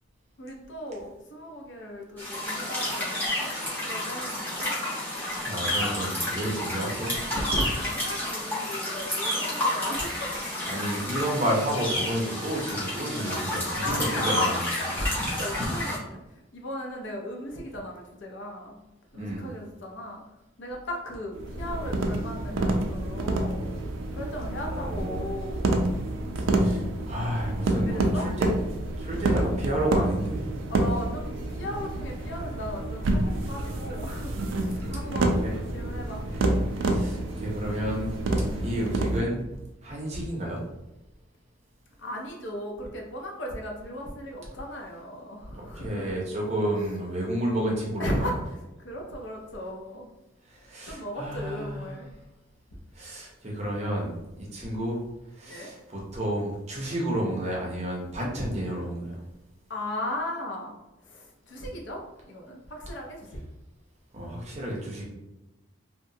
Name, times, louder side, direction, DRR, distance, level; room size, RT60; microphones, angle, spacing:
voice 1, 0.4-3.5 3.8-4.7 7.3-11.0 13.6-14.6 14.9-16.2 16.5-18.8 19.1-20.2 20.6-23.7 24.1-25.7 27.7-28.3 30.7-35.4 35.7-36.2 38.4-38.7 42.0-46.1 48.0-48.4 48.8-50.1 50.9-52.1 55.5-55.7 59.7-60.7 61.0-63.4, left 1 dB, 70° left, 0 dB, 0.6 m, -36 dB
sound 1, 2.2-16.0, left 1 dB, 10° left, 0.7 m, -30 dB
voice 2, 5.4-7.1 10.7-14.7 19.1-19.4 24.6-25.3 26.3-28.5 29.0-30.5 35.4-35.5 36.8-38.2 38.6-39.4 39.8-40.6 45.5-48.3 50.5-51.9 52.9-55.0 55.3-59.2 64.1-65.0, right 1 dB, 35° right, -3 dB, 0.6 m, -31 dB
sound 2, 21.3-39.2, right 2 dB, 80° right, 0.4 m, -28 dB
sound 3, 30.9-39.0, equal, 30° left, 1.0 m, -45 dB
2.8 x 2.1 x 2.6 m, 0.97 s
head